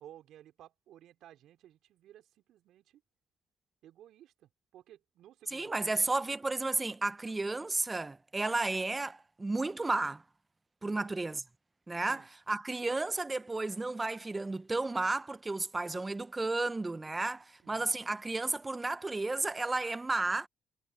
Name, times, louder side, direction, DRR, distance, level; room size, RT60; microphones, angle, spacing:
voice 1, 0.0-3.0 3.8-6.0 10.8-11.1 12.1-12.3 17.6-18.0, right 12 dB, 70° right, 4.5 m, -56 dB
voice 2, 5.5-10.2 10.8-11.4 11.9-20.5, right 2 dB, 25° right, 1.2 m, -33 dB
hypercardioid pair, 50°, 0 cm